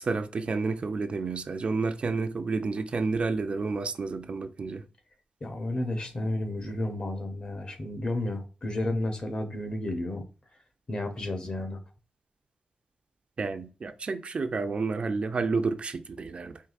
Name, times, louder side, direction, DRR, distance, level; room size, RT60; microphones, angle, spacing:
voice 1, 0.0-4.8 13.4-16.6, right 4 dB, 45° right, 0.4 m, -30 dB
voice 2, 5.4-10.2 10.9-11.8, left 1 dB, 35° left, 0.7 m, -32 dB
4.6 x 3.1 x 2.4 m
wide cardioid pair, 165°, 3 cm